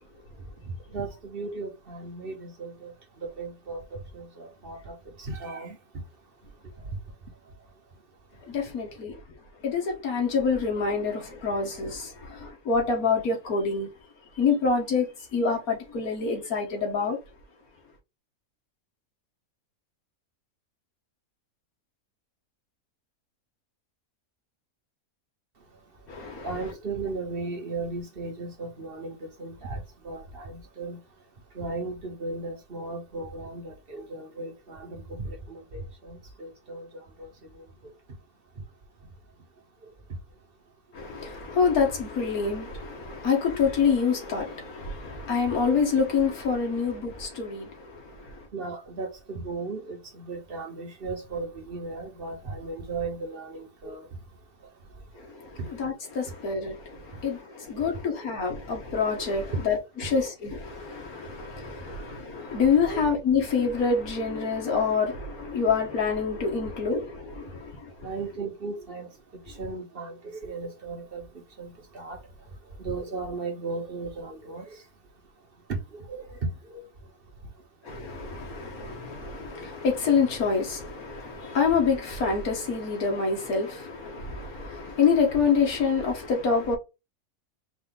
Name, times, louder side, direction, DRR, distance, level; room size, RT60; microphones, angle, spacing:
voice 1, 0.9-2.9 3.2-5.8 26.4-31.0 31.5-36.9 37.2-37.6 48.5-54.1 55.6-55.7 56.3-56.4 58.0-58.1 62.8-63.0 68.0-69.1 69.6-71.2 71.6-72.2 72.8-74.8 75.7-76.4 76.7-76.9, right 3 dB, 45° right, 1.2 m, -36 dB
voice 2, 8.5-9.2 9.6-13.9 14.3-17.2 26.1-26.5 40.9-48.5 55.2-68.1 77.8-86.8, left 5 dB, 80° left, 1.8 m, -27 dB
4.8 x 2.6 x 3.8 m
omnidirectional pair, 1.5 m